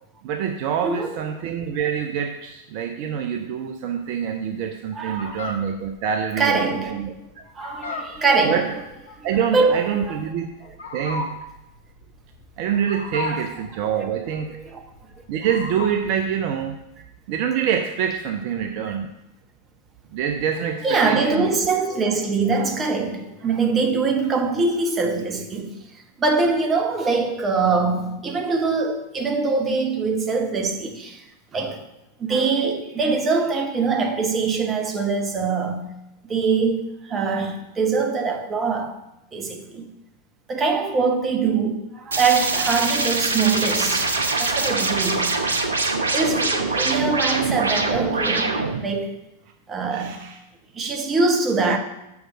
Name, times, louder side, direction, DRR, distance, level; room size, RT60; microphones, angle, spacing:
voice 1, 0.2-7.4 8.4-8.7 9.2-10.5 10.9-11.3 12.6-14.6 15.3-16.8 17.3-19.1 20.1-21.5 49.9-50.4, right 8 dB, 45° right, 0.5 m, -26 dB
voice 2, 0.8-1.2 4.9-5.4 6.4-7.0 7.5-8.7 9.5-10.3 10.6-10.7 13.2-13.5 14.5-14.8 20.8-25.8 26.2-31.2 31.5-31.9 32.2-35.9 36.3-39.0 39.3-39.9 40.5-44.1 44.4-45.4 46.1-49.2 49.7-50.2 50.7-51.8, right 4 dB, 20° right, 1.0 m, -23 dB
Fowl, 5.1-16.2, left 3 dB, 60° left, 1.1 m, -36 dB
sound 1, 42.1-48.8, right 3 dB, 75° right, 0.8 m, -23 dB
6.3 x 4.8 x 6.2 m
figure-of-eight pair, 90°, 0 cm